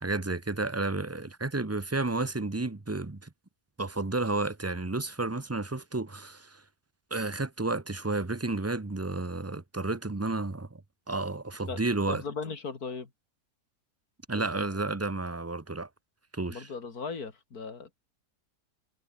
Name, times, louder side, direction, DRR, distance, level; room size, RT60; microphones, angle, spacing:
voice 1, 0.0-3.3 3.8-6.6 7.1-10.8 11.1-12.2 14.3-15.9 16.3-16.7, right 2 dB, 15° right, 0.5 m, -31 dB
voice 2, 12.1-13.1 14.3-14.7 16.5-18.0, left 5 dB, 60° left, 3.0 m, -38 dB
omnidirectional pair, 1.8 m